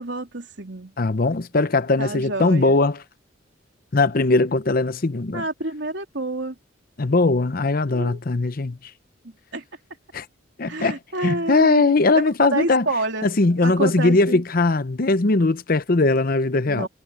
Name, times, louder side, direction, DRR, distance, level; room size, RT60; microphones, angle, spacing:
voice 1, 0.0-0.9 2.0-2.8 5.3-6.5 7.9-8.2 9.5-9.6 10.7-13.3 13.6-14.4 16.7-16.9, right 2 dB, 70° right, 3.5 m, -28 dB
voice 2, 1.0-3.0 3.9-5.4 7.0-8.8 10.1-10.2 10.6-12.9 13.2-16.9, left 3 dB, 50° left, 0.8 m, -20 dB
head